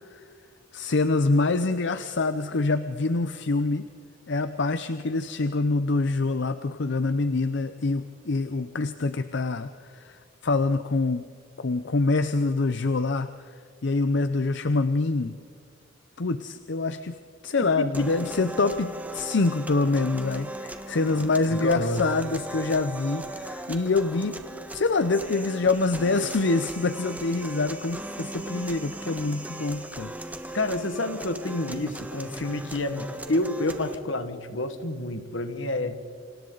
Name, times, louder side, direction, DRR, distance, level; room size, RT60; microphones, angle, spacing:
voice 1, 0.7-3.9 4.3-11.2 11.6-15.4 16.2-17.2 17.4-24.4 24.7-30.1, left 3 dB, 65° left, 11 dB, 0.7 m, -25 dB
voice 2, 17.6-18.1 21.5-22.0 30.5-36.0, left 2 dB, 80° left, 9 dB, 1.6 m, -29 dB
sound 1, 17.9-33.9, right 1 dB, 10° right, 1.4 m, -38 dB
28.5 x 26.5 x 4.0 m, 2.2 s
head